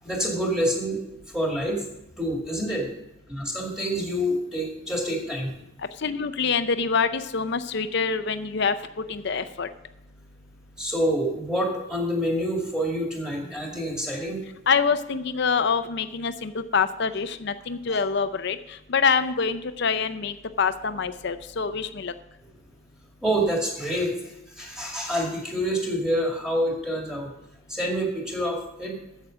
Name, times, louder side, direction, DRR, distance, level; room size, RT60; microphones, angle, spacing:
voice 1, 0.0-1.0 1.3-1.9 2.2-2.9 3.3-5.5 10.8-14.4 23.2-27.3 27.7-29.0, equal, 5° right, -1 dB, 2.1 m, -27 dB
voice 2, 6.0-8.7 9.1-9.7 14.7-18.6 18.9-22.1, left 5 dB, 55° left, 11 dB, 0.6 m, -25 dB
9.2 x 7.5 x 6.3 m, 0.88 s
head